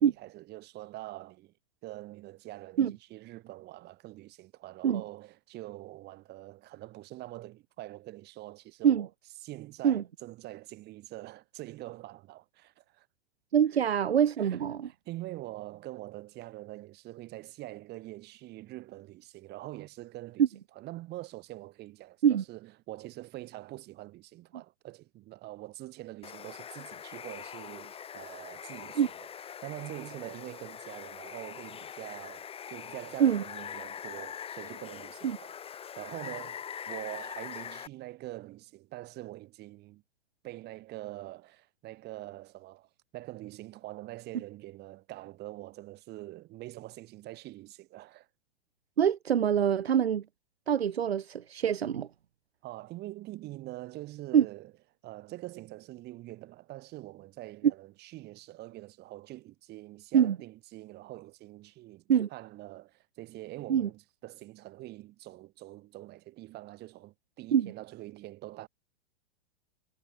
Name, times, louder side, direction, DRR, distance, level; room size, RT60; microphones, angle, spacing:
voice 1, 0.0-1.5 1.8-9.1 9.4-13.1 13.7-14.0 14.4-20.4 20.8-29.3 29.6-35.5 36.0-40.0 40.4-48.3 52.6-54.7 55.0-62.0 62.3-68.7, right 17 dB, 35° right, 5.9 m, -44 dB
voice 2, 13.5-14.9 20.4-20.5 22.2-22.4 29.0-29.1 33.2-33.4 35.2-35.4 49.0-50.2 50.7-52.1 54.3-54.4 60.1-60.4 62.1-62.3 63.7-63.9 67.5-67.7, right 9 dB, 80° right, 1.4 m, -24 dB
Water, 26.2-37.9, left 8 dB, 20° left, 2.9 m, -43 dB
hypercardioid pair, 120°, 30 cm